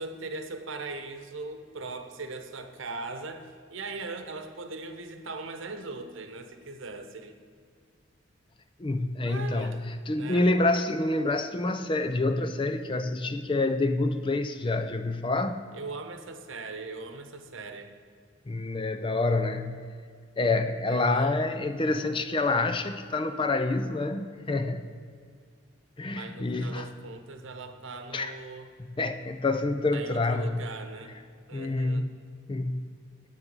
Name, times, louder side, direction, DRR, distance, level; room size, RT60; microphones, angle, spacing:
voice 1, 0.0-7.4 9.2-9.8 10.1-10.5 15.7-17.9 20.9-21.4 26.1-28.7 29.9-31.2 31.5-32.0, right 3 dB, 70° right, 7 dB, 0.9 m, -40 dB
voice 2, 8.8-15.6 18.5-20.0 20.4-24.9 26.0-26.9 28.1-28.3 29.0-30.6 31.5-32.1 32.5-32.9, left 2 dB, 25° left, 9 dB, 0.4 m, -27 dB
9.9 x 8.3 x 5.4 m, 2.2 s
head